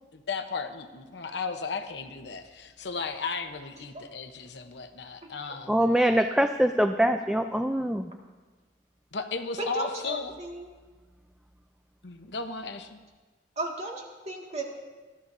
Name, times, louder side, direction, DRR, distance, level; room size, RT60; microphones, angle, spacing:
voice 1, 0.1-5.7 9.1-10.4 12.0-13.0, left 4 dB, 75° left, 7 dB, 0.9 m, -35 dB
voice 2, 5.7-8.1, equal, 5° right, 6 dB, 0.4 m, -23 dB
voice 3, 9.6-10.7 13.6-14.7, right 2 dB, 40° right, -1 dB, 2.0 m, -35 dB
20.0 x 13.0 x 2.7 m, 1.3 s
head